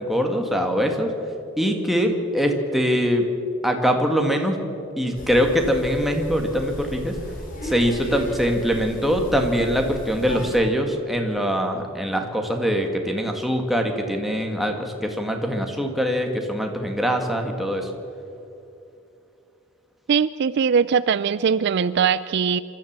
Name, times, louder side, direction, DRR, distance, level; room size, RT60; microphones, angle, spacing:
voice 1, 0.1-1.1 1.6-3.3 3.6-4.6 5.0-7.2 7.6-17.9, equal, ahead, 3 dB, 1.8 m, -23 dB
sound 1, 5.1-10.6, left 1 dB, 40° left, 3.8 m, -35 dB
voice 2, 20.1-22.6, right 6 dB, 55° right, 16 dB, 0.4 m, -21 dB
26.5 x 13.5 x 7.4 m, 2.8 s
head